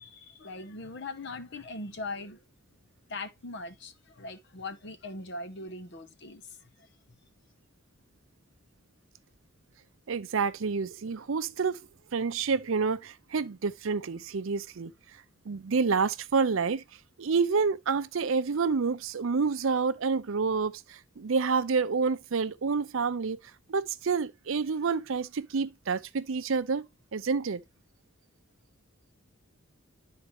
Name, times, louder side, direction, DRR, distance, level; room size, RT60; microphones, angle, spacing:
voice 1, 0.0-2.4 3.1-7.2, left 2 dB, 55° left, 0.9 m, -41 dB
voice 2, 10.1-11.8 12.1-14.9 15.5-16.8 17.2-23.4 23.7-26.9 27.1-27.6, right 5 dB, 70° right, 0.5 m, -28 dB
11.0 x 4.0 x 3.1 m
head